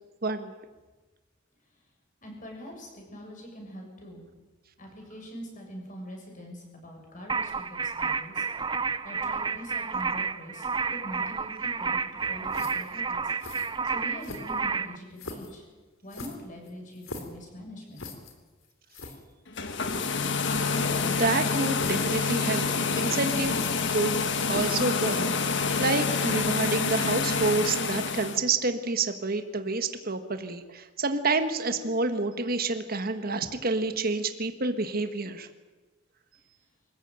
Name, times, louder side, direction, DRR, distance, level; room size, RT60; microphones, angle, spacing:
voice 1, 0.2-0.5 21.0-22.7 22.9-23.5 23.9-24.1 24.4-25.2 25.8-35.5, right 3 dB, 45° right, 8 dB, 1.6 m, -28 dB
voice 2, 2.2-4.2 4.8-13.3 13.8-15.6 16.0-18.1, equal, 40° left, 1 dB, 7.0 m, -43 dB
sound 1, 7.3-15.0, right 5 dB, 25° right, 0.6 m, -30 dB
sound 2, 12.5-12.9 13.4-13.7 14.2-14.7 15.2-15.5 16.1-17.4 18.0-18.3 18.6-18.7 18.9-19.2 19.9-20.1 20.8-21.2 21.7-22.2 22.5-22.8 23.5-24.1 24.5-24.8, left 3 dB, 80° left, 3.5 m, -41 dB
sound 3, 19.5-28.4, left 4 dB, 60° left, 1.6 m, -27 dB
25.5 x 14.5 x 9.1 m, 1.2 s
head